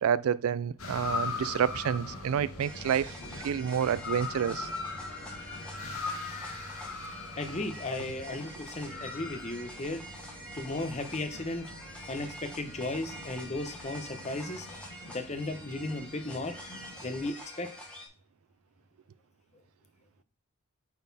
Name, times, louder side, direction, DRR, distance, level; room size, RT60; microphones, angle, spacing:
voice 1, 0.0-3.2 3.4-4.7, right 8 dB, 85° right, 0.3 m, -29 dB
Slow train approaches an underground station, 0.8-17.3, left 3 dB, 80° left, 1.7 m, -41 dB
sound 1, 2.6-18.1, equal, 5° left, 1.5 m, -46 dB
voice 2, 7.4-10.0 10.5-11.7 12.1-14.7 15.1-16.5 17.0-17.7, left 2 dB, 30° left, 0.9 m, -35 dB
8.5 x 4.1 x 4.1 m
head